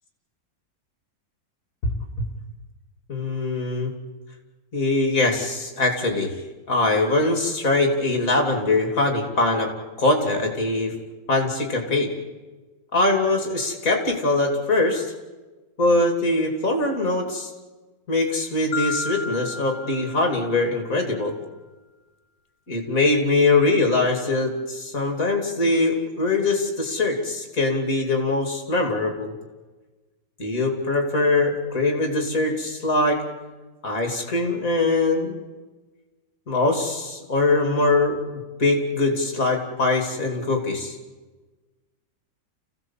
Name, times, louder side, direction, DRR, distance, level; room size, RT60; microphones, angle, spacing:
voice 1, 3.1-3.9 4.7-6.4 6.7-9.7 10.0-10.9 11.3-12.1 12.9-15.0 15.8-17.5 18.1-21.3 22.7-29.3 30.4-33.2 33.8-35.4 36.5-38.2 38.6-41.0, left 2 dB, 45° left, 3 dB, 3.2 m, -22 dB
Marimba xylophone, 18.7-20.9, left 4 dB, 75° left, 1.6 m, -33 dB
28.5 x 16.5 x 7.4 m, 1.2 s
omnidirectional pair, 2.1 m